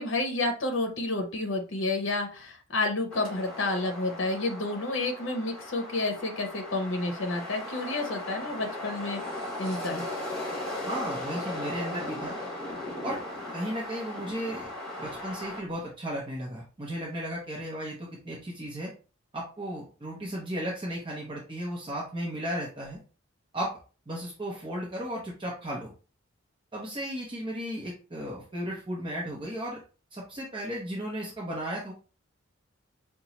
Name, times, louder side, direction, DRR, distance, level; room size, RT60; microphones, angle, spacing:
voice 1, 0.0-9.2 9.6-10.0, left 2 dB, 65° left, 4 dB, 0.7 m, -30 dB
sound 1, 3.1-15.6, left 1 dB, 10° left, 2.2 m, -37 dB
voice 2, 10.8-12.4 13.0-13.2 13.5-14.7 15.0-18.9 19.3-23.0 23.5-23.7 24.1-25.9 26.7-29.8 30.1-31.9, equal, 25° right, -4 dB, 0.8 m, -35 dB
5.3 x 2.3 x 2.9 m, 0.35 s
head